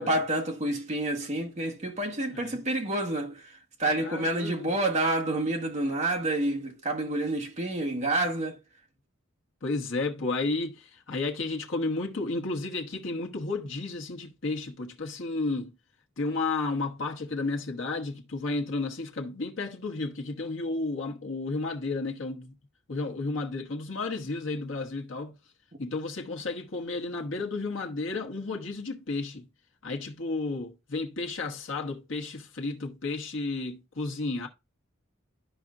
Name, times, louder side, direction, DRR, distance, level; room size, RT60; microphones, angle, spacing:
voice 1, 0.0-3.5 3.8-8.6, right 1 dB, 35° right, 1.3 m, -28 dB
voice 2, 4.0-4.7 9.6-15.7 16.2-22.5 22.9-25.4 25.8-29.5 29.8-34.5, left 3 dB, 65° left, 1.1 m, -32 dB
12.5 x 5.0 x 2.5 m
head